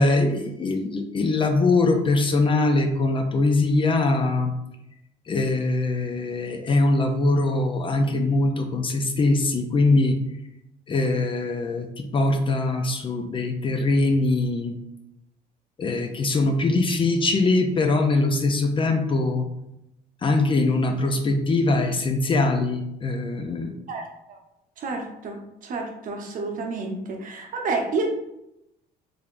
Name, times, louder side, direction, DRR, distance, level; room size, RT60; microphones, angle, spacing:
voice 1, 0.0-4.5 5.3-10.2 10.9-14.7 15.8-19.4 20.2-23.7, left 2 dB, 30° left, 6 dB, 0.4 m, -22 dB
voice 2, 23.9-24.4 24.8-28.0, right 3 dB, 55° right, 2 dB, 0.8 m, -30 dB
3.5 x 3.4 x 2.5 m, 0.84 s
cardioid pair, 110°, 17 cm